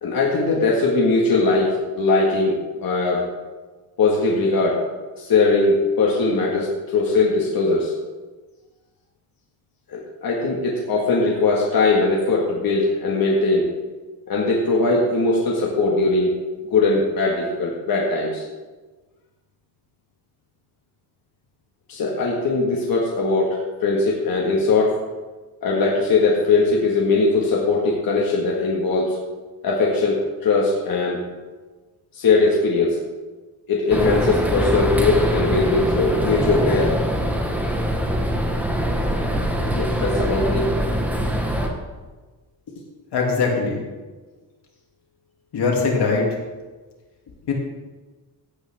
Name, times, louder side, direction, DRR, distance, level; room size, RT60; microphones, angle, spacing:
voice 1, 0.0-3.3 4.0-4.8 5.2-7.9 9.9-13.7 14.3-16.4 16.7-18.4 21.9-25.0 25.6-29.2 29.6-31.2 32.1-33.0 33.7-36.9 39.7-40.7, left 3 dB, 60° left, -3 dB, 1.8 m, -20 dB
sound 1, 33.9-41.7, equal, 5° right, 1.3 m, -23 dB
voice 2, 43.1-43.8 45.5-46.2 47.5-47.6, left 4 dB, 80° left, -1 dB, 2.8 m, -21 dB
16.5 x 8.8 x 3.6 m, 1.3 s
wide cardioid pair, 160°, 39 cm